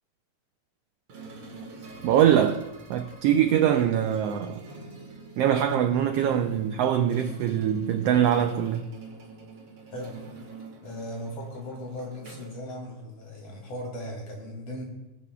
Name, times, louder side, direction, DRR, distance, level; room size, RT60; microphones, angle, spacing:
sound 1, 1.1-13.4, right 3 dB, 50° right, 2.2 m, -46 dB
voice 1, 2.0-2.6 2.9-4.6 5.4-8.8, right 10 dB, 80° right, 1.4 m, -23 dB
voice 2, 9.9-10.2 10.8-14.8, left 1 dB, 55° left, 3.3 m, -38 dB
23.5 x 8.4 x 2.3 m
omnidirectional pair, 3.3 m